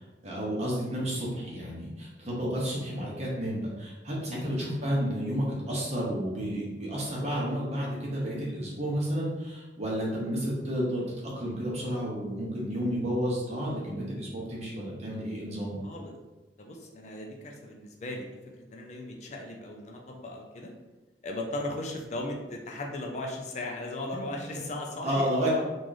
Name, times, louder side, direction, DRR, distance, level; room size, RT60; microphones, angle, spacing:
voice 1, 0.2-15.8 25.0-25.5, equal, 40° right, -4 dB, 1.0 m, -31 dB
voice 2, 15.8-16.1 16.6-18.4 18.7-20.7 21.2-25.6, left 1 dB, 40° left, 1 dB, 0.4 m, -37 dB
3.0 x 2.5 x 3.8 m, 1.1 s
head